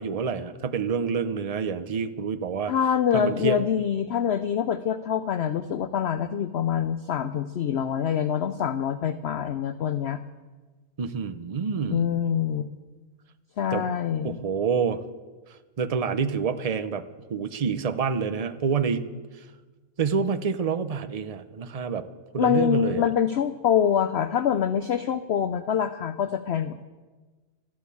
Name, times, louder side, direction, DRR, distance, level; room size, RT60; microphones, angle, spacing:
voice 1, 0.0-2.7 3.1-3.6 11.0-12.1 13.7-13.9 14.2-15.0 15.8-17.0 17.3-19.0 20.0-22.1 22.3-23.0, right 6 dB, 50° right, 11 dB, 0.4 m, -27 dB
voice 2, 2.6-10.2 11.9-12.7 13.6-14.4 22.4-26.8, left 8 dB, 65° left, 12 dB, 0.6 m, -25 dB
13.0 x 11.0 x 8.4 m, 1.3 s
omnidirectional pair, 1.6 m